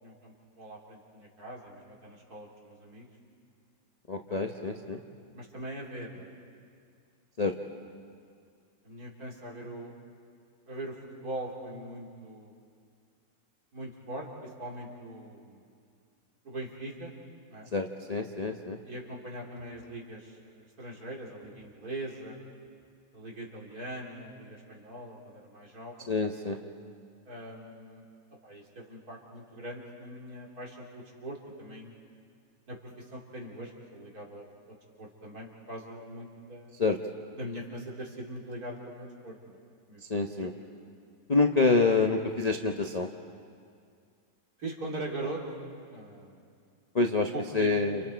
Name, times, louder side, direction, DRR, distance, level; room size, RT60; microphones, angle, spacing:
voice 1, 0.0-3.1 4.3-6.3 8.8-9.9 10.7-12.5 13.7-15.7 16.4-17.1 17.5-17.7 18.8-22.4 23.1-26.1 27.3-28.0 28.4-31.9 32.7-36.8 37.3-39.6 39.9-40.0 40.4-40.5 44.6-45.4 45.9-46.5 47.3-47.7, right 1 dB, 50° right, -3 dB, 3.9 m, -41 dB
voice 2, 4.1-5.0 7.4-7.5 17.7-18.8 26.1-26.6 36.8-37.0 40.1-40.5 41.3-43.1 46.9-48.0, left 3 dB, 40° left, 4 dB, 0.6 m, -27 dB
30.0 x 29.5 x 4.5 m, 2.2 s
omnidirectional pair, 2.0 m